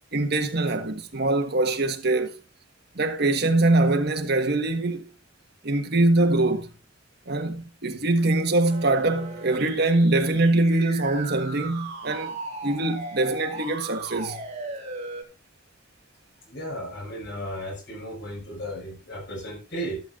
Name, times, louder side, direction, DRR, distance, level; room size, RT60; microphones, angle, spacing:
voice 1, 0.1-2.4 2.9-5.0 5.6-6.7 7.3-12.3 12.6-14.4, right 2 dB, 55° right, 1.5 m, -23 dB
sound 1, 8.7-15.2, right 3 dB, 35° right, 3.7 m, -37 dB
voice 2, 16.5-20.0, equal, 60° left, 6.0 m, -35 dB
14.0 x 12.5 x 2.5 m
head